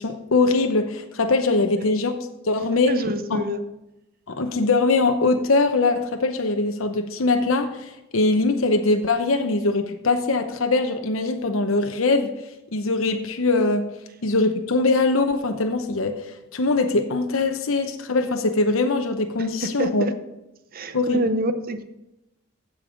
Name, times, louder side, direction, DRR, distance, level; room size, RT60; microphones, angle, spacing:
voice 1, 0.0-2.1 2.4-3.0 3.3-3.4 4.3-12.3 12.7-13.8 14.2-20.1 20.9-21.2, left 3 dB, 75° left, 6 dB, 0.9 m, -22 dB
voice 2, 2.9-3.6 19.4-20.1 20.7-21.8, right 1 dB, 45° right, 10 dB, 0.8 m, -27 dB
15.5 x 5.5 x 5.1 m, 0.93 s
head